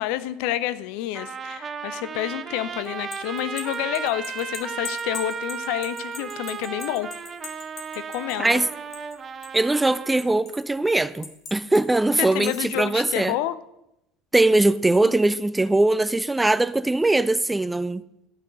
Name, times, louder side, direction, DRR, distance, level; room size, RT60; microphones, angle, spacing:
voice 1, 0.0-7.1 7.9-8.6 12.2-13.6 15.0-15.1, left 13 dB, 65° left, 0.5 m, -29 dB
Trumpet, 1.1-10.2, right 6 dB, 35° right, 0.8 m, -35 dB
sound 1, 2.9-9.2 9.4-10.6 11.2-11.8 12.3-12.8, left 6 dB, 45° left, 1.9 m, -40 dB
voice 2, 8.4-8.7 9.5-13.4 14.3-18.0, right 2 dB, 10° right, 0.5 m, -21 dB
13.0 x 6.1 x 6.7 m
hypercardioid pair, 75°, 0 cm